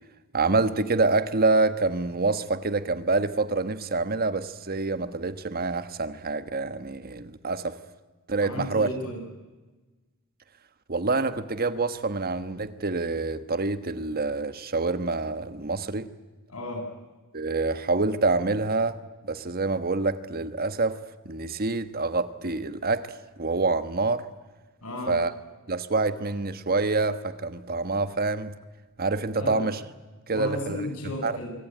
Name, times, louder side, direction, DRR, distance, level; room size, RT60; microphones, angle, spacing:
voice 1, 0.3-7.8 8.3-8.9 10.9-16.1 17.3-19.0 19.2-21.0 21.2-24.2 25.1-25.3 25.7-28.5 29.0-29.8 30.3-30.8 31.2-31.3, right 3 dB, 45° right, 12 dB, 1.3 m, -26 dB
voice 2, 8.4-9.2 16.5-16.9 24.8-25.2 29.3-29.6 30.3-31.5, left 1 dB, 85° left, 3 dB, 7.8 m, -34 dB
24.5 x 24.5 x 9.4 m, 1.2 s
head